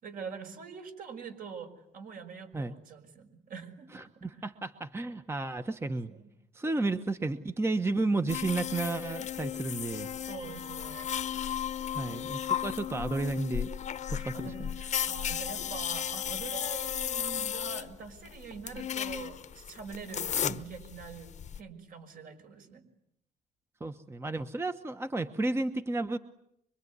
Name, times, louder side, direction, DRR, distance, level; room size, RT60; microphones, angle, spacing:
voice 1, 0.0-3.9 6.1-6.3 10.0-11.1 14.1-22.8, right 6 dB, 55° right, 6 dB, 5.8 m, -44 dB
voice 2, 3.9-6.1 6.5-10.1 11.9-13.7 14.1-14.5 20.4-20.5 23.8-26.2, right 2 dB, 15° right, 9 dB, 1.2 m, -32 dB
sound 1, 8.3-21.6, left 9 dB, 45° left, 1.1 m, -35 dB
25.0 x 24.0 x 9.6 m, 0.77 s
cardioid pair, 110°, 17 cm